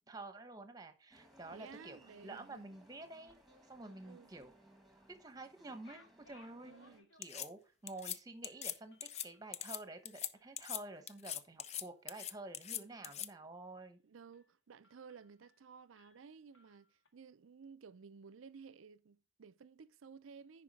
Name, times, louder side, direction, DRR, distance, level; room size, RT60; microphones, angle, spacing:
voice 1, 0.1-3.3 3.7-4.5 5.1-6.7 7.2-14.0, right 2 dB, 20° right, 1.0 m, -50 dB
sound 1, 1.1-7.0, right 1 dB, ahead, 1.4 m, -64 dB
voice 2, 1.5-2.6 4.0-4.3 6.6-7.1 12.7-13.1 14.0-20.6, right 5 dB, 85° right, 0.5 m, -56 dB
sound 2, 5.6-7.6 8.0-8.1 8.5-10.6 10.9-11.2 11.6-12.3 12.7-13.4 13.8-14.0 14.3-14.5 14.8-15.7 16.0-17.1, left 3 dB, 70° left, 1.7 m, -68 dB
sound 3, 7.2-7.5 7.9-8.2 8.4-8.7 9.0-9.3 9.5-9.8 10.0-10.3 10.6-10.8 11.1-11.8 12.1-13.3, left 10 dB, 35° left, 0.4 m, -41 dB
10.0 x 4.8 x 4.1 m
head